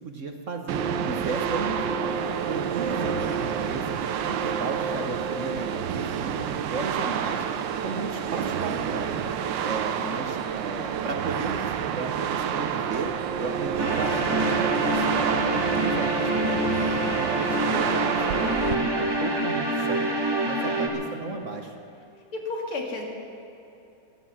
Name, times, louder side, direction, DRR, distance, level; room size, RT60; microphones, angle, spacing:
voice 1, 0.0-2.1 2.5-3.8 4.2-7.4 7.8-9.2 9.6-11.6 11.9-13.1 13.4-15.5 15.8-20.1 20.4-21.7, right 4 dB, 50° right, 4 dB, 1.0 m, -34 dB
sound 1, 0.7-18.8, right 7 dB, 70° right, 1.3 m, -28 dB
voice 2, 2.8-3.2 20.4-21.0 22.3-23.0, left 3 dB, 90° left, 1 dB, 3.0 m, -34 dB
sound 2, 13.8-20.9, right 1 dB, 15° right, 1.2 m, -27 dB
16.0 x 11.5 x 7.4 m, 2.9 s
omnidirectional pair, 2.3 m